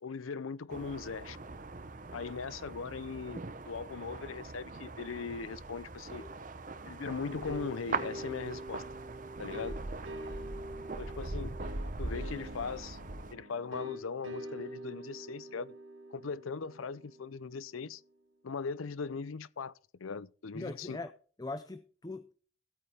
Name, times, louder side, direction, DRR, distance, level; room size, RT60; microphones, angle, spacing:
voice 1, 0.0-1.4 2.1-6.3 6.9-8.8 9.4-9.8 11.0-11.6 12.0-13.0 13.3-15.7 16.1-18.0 18.4-19.7 20.0-21.0, left 5 dB, 85° left, 0.6 m, -39 dB
sound 1, 0.7-13.4, right 3 dB, 40° right, 0.8 m, -41 dB
sound 2, 7.4-17.9, right 1 dB, 75° right, 2.8 m, -46 dB
voice 2, 20.5-21.1 21.4-22.3, left 2 dB, 20° left, 0.6 m, -41 dB
15.5 x 8.6 x 3.4 m
head